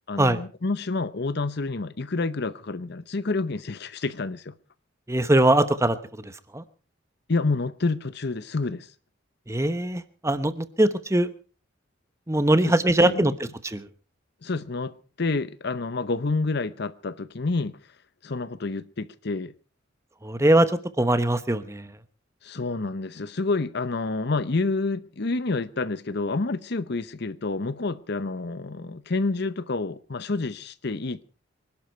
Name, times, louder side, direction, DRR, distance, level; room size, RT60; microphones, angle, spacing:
voice 1, 0.1-4.5 7.3-8.9 12.6-13.4 14.4-17.8 18.2-19.5 22.4-31.2, left 3 dB, 60° left, 0.8 m, -28 dB
voice 2, 5.1-6.0 6.2-6.6 9.5-11.3 12.3-13.9 20.2-21.9, right 1 dB, 15° right, 1.0 m, -22 dB
25.5 x 12.0 x 4.5 m
head